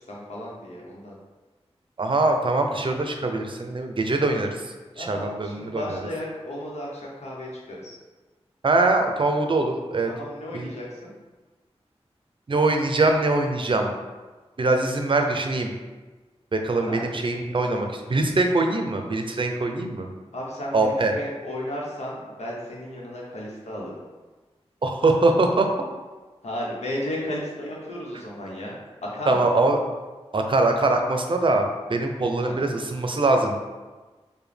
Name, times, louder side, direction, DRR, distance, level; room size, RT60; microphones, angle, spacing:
voice 1, 0.1-1.1 4.9-8.0 10.1-11.1 16.9-17.1 17.6-17.9 20.3-24.0 26.4-29.5 32.4-32.6, left 1 dB, 85° left, -4 dB, 0.9 m, -34 dB
voice 2, 2.0-6.0 8.6-10.1 10.5-10.7 12.5-13.9 14.6-15.7 16.5-20.1 20.7-21.1 24.8-25.7 29.3-29.8 30.3-33.6, right 2 dB, 50° right, 4 dB, 0.5 m, -23 dB
4.8 x 2.2 x 3.3 m, 1.3 s
wide cardioid pair, 65°, 11 cm